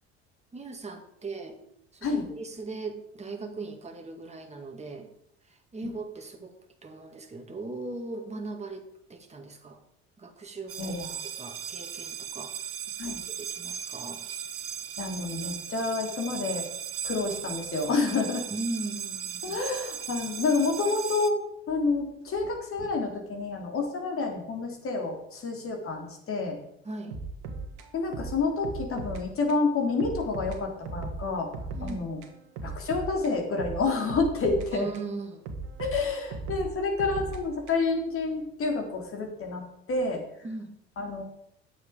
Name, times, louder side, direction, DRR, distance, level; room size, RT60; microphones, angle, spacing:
voice 1, 0.5-1.6 1.9-5.1 5.5-6.5 6.8-9.8 10.2-11.0 11.2-12.5 13.0-14.2 18.5-19.6 26.8-27.2 31.7-32.0 34.7-35.4 40.4-40.7, right 3 dB, 20° right, 4 dB, 2.0 m, -39 dB
sound 1, 10.7-21.3, right 8 dB, 45° right, 1.1 m, -37 dB
voice 2, 10.8-11.1 13.0-13.2 15.0-16.7 17.0-18.5 19.4-21.4 21.7-26.6 27.9-31.5 31.8-32.2 32.6-34.9 35.8-39.6 39.9-40.2 41.0-41.2, left 3 dB, 40° left, 2 dB, 3.5 m, -29 dB
sound 2, 27.1-29.2 29.5-29.6 30.0-32.0 32.2-35.1 35.5-38.0, right 3 dB, 65° right, 1.8 m, -38 dB
11.0 x 8.3 x 5.1 m, 0.74 s
hypercardioid pair, 65°, 32 cm